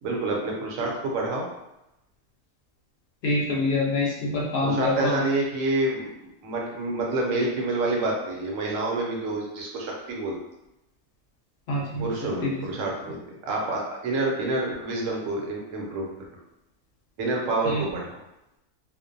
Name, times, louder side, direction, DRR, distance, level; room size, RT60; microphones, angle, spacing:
voice 1, 0.0-1.5 4.6-6.1 6.4-10.4 12.0-16.1 17.2-18.2, right 2 dB, 70° right, -1 dB, 0.9 m, -28 dB
voice 2, 3.2-5.2 11.7-12.1 17.6-17.8, left 2 dB, 65° left, -4 dB, 0.6 m, -25 dB
2.4 x 2.0 x 2.5 m, 0.91 s
omnidirectional pair, 1.6 m